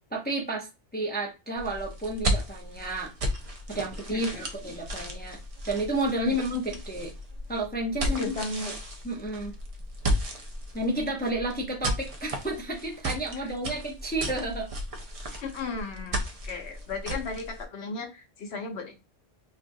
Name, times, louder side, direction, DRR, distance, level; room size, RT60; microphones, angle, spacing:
voice 1, 0.1-0.7 0.9-3.1 3.7-5.4 5.6-7.1 7.5-8.3 8.7-8.8 9.0-9.5 10.7-14.7 15.3-15.4, right 1 dB, 10° left, -1 dB, 0.5 m, -31 dB
sound 1, 1.6-17.6, equal, 40° right, 0.5 m, -34 dB
voice 2, 4.1-4.4 6.3-6.8 8.2-8.7 13.4-13.5 15.4-18.9, left 3 dB, 75° left, 3 dB, 1.1 m, -36 dB
4.4 x 2.5 x 2.6 m, 0.28 s
omnidirectional pair, 1.1 m